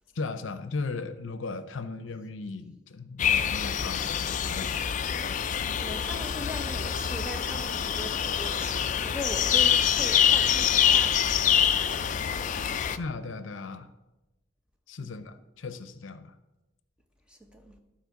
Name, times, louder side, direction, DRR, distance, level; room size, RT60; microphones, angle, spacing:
voice 1, 0.1-4.9 5.3-5.8 13.0-13.9 14.9-16.3, left 3 dB, 80° left, 0.6 m, -37 dB
sound 1, 3.2-13.0, left 8 dB, 40° left, 0.4 m, -25 dB
voice 2, 5.8-12.2 12.8-12.9 15.0-15.2 17.3-17.8, equal, 5° right, 0.9 m, -41 dB
12.0 x 4.3 x 5.9 m
head